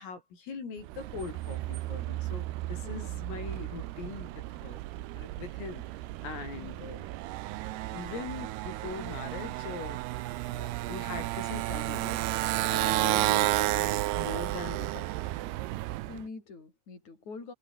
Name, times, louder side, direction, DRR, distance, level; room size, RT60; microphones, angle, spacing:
voice 1, 0.0-4.8 5.1-5.8 6.2-7.1 7.9-12.3 12.7-15.3, left 5 dB, 85° left, 10.0 m, -42 dB
Motorcycle, 0.8-16.2, right 17 dB, 80° right, 2.4 m, -32 dB
voice 2, 2.8-3.1 6.6-6.8 13.2-13.5 16.1-17.5, left 4 dB, 35° left, 8.9 m, -45 dB
omnidirectional pair, 5.8 m